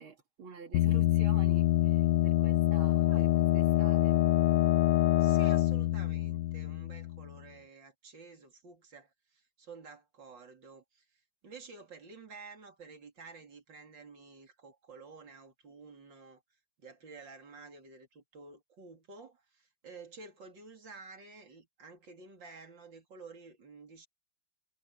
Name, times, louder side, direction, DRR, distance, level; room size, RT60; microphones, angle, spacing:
voice 1, 0.0-4.2, right 6 dB, 90° right, 3.4 m, -48 dB
sound 1, 0.7-7.3, left 14 dB, 70° left, 1.2 m, -26 dB
voice 2, 5.2-16.4 16.8-24.1, right 4 dB, 60° right, 3.9 m, -51 dB
omnidirectional pair, 2.2 m